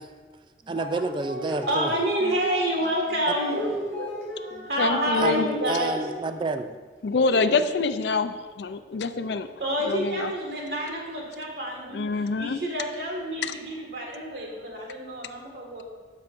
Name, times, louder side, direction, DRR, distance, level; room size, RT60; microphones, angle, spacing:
sound 1, 0.6-6.4, left 1 dB, ahead, 1.7 m, -37 dB
voice 1, 0.7-1.9 3.3-3.4 5.1-6.8, right 3 dB, 25° right, 8 dB, 0.3 m, -29 dB
voice 2, 1.3-6.1 7.3-7.7 9.6-15.8, right 1 dB, 65° right, -1 dB, 1.8 m, -29 dB
voice 3, 4.8-5.5 7.0-9.5 9.9-10.3 11.9-12.6, left 4 dB, 70° left, 10 dB, 0.4 m, -25 dB
13.0 x 5.8 x 2.6 m, 1.5 s
head